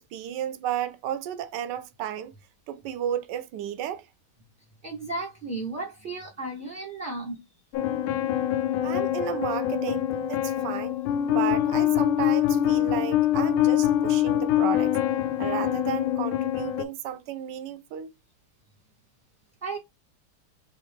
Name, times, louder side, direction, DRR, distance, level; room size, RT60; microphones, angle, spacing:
voice 1, 0.0-2.3 2.7-4.0 8.8-11.0 11.3-15.0 15.4-18.1, right 10 dB, 70° right, 1.1 m, -33 dB
voice 2, 4.8-7.4 19.6-19.8, right 2 dB, 35° right, 0.8 m, -34 dB
sound 1, 7.7-16.8, left 11 dB, 85° left, 1.5 m, -24 dB
4.7 x 3.0 x 3.3 m
omnidirectional pair, 2.3 m